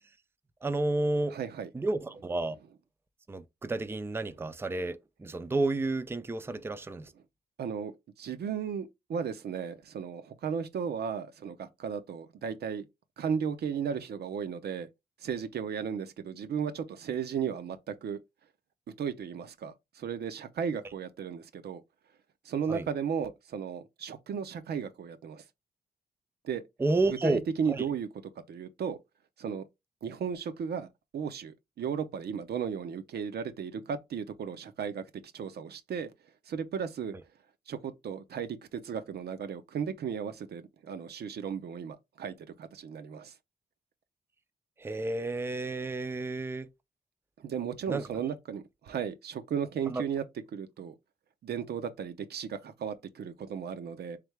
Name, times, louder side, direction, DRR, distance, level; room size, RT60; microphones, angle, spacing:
voice 1, 0.6-1.4 1.7-2.6 3.3-7.1 22.7-22.9 26.8-27.4 27.7-27.8 44.8-46.7 47.9-48.0 49.9-50.0, right 2 dB, 15° right, 0.4 m, -31 dB
voice 2, 1.3-1.7 7.6-7.9 8.2-12.8 13.2-14.9 15.2-18.2 19.0-21.8 22.5-25.4 26.4-26.6 27.1-28.1 28.5-29.0 29.4-29.6 30.0-35.0 35.3-36.1 36.5-37.2 37.7-43.3 47.4-50.2 50.5-50.9 51.4-54.2, right 7 dB, 75° right, 0.6 m, -35 dB
3.5 x 3.3 x 3.3 m
cardioid pair, 90°, 17 cm